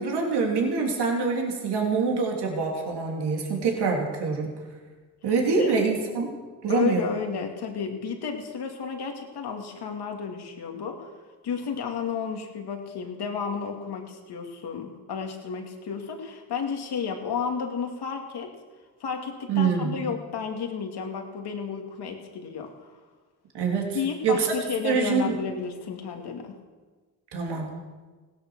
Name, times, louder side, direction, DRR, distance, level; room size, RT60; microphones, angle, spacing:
voice 1, 0.0-4.5 5.2-6.4 6.6-7.2 19.5-20.0 23.5-24.0 24.2-24.6 24.8-25.4 27.3-27.7, right 4 dB, 75° right, 1 dB, 3.0 m, -25 dB
voice 2, 6.7-11.1 11.4-18.5 19.0-22.9 23.9-26.6, left 6 dB, 70° left, 3 dB, 2.6 m, -32 dB
17.0 x 12.0 x 6.3 m, 1.3 s
supercardioid pair, 50°, 40 cm